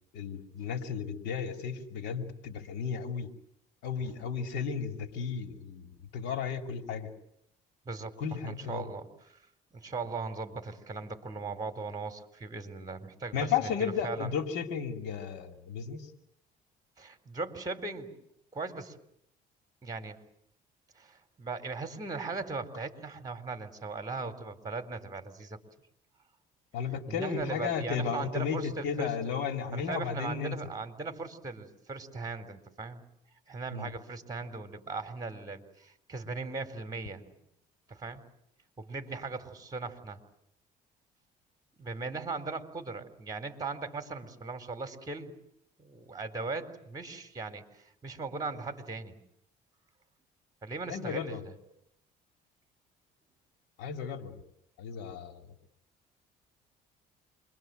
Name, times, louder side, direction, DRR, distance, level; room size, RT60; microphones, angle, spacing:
voice 1, 0.1-3.3 3.8-7.1 8.2-8.8 13.3-16.1 26.7-30.5 33.7-33.9 50.9-51.4 53.8-54.4 54.8-55.5, left 6 dB, 90° left, 5 dB, 2.8 m, -34 dB
voice 2, 7.9-9.1 9.7-14.3 17.0-18.1 18.5-18.9 19.8-20.2 21.0-25.6 27.1-29.1 29.7-33.0 33.5-37.2 37.9-38.2 38.8-40.2 41.8-45.4 45.8-49.2 50.6-51.5, right 3 dB, 20° right, 7 dB, 4.1 m, -38 dB
27.5 x 23.0 x 7.9 m, 0.75 s
cardioid pair, 110°, 17 cm